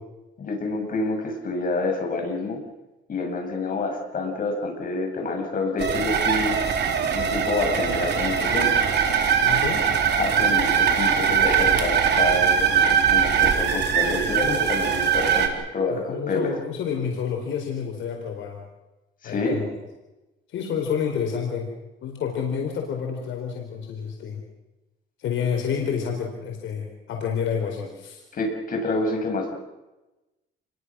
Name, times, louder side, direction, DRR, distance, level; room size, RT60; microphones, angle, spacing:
voice 1, 0.4-2.6 3.1-6.6 7.1-9.2 10.2-16.5 19.2-19.6 28.3-29.5, left 3 dB, 45° left, 2 dB, 7.6 m, -28 dB
sound 1, 5.8-15.5, right 7 dB, 60° right, 3.8 m, -21 dB
voice 2, 9.4-9.9 15.9-18.6 19.2-19.7 20.5-21.7 22.0-24.4 25.2-28.2, left 7 dB, 70° left, 2 dB, 4.4 m, -29 dB
29.0 x 22.0 x 6.3 m, 1.1 s
cardioid pair, 110°, 20 cm